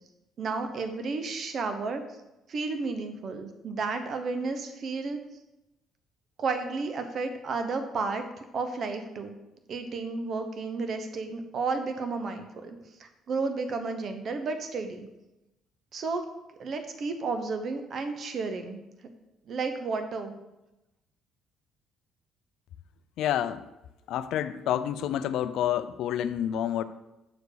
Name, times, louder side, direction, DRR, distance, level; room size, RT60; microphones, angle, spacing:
voice 1, 0.4-2.0 2.5-5.2 6.4-8.2 8.5-9.4 9.7-15.1 15.9-16.2 16.6-18.8 19.5-20.3, right 4 dB, 55° right, 7 dB, 1.0 m, -32 dB
voice 2, 23.2-23.6 24.1-26.8, left 10 dB, 75° left, 13 dB, 0.4 m, -28 dB
6.8 x 4.6 x 4.8 m, 0.96 s
supercardioid pair, 80°, 0 cm